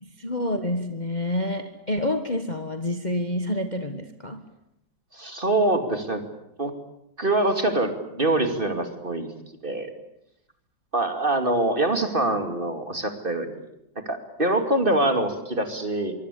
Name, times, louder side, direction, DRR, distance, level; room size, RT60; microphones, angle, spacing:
voice 1, 0.0-4.4, left 1 dB, 25° left, 7 dB, 1.5 m, -28 dB
voice 2, 5.1-6.2 6.6-6.7 7.2-9.3 9.6-9.9 10.9-13.6 14.1-16.1, right 2 dB, 25° right, 6 dB, 2.6 m, -24 dB
24.5 x 24.5 x 8.5 m, 0.79 s
omnidirectional pair, 2.0 m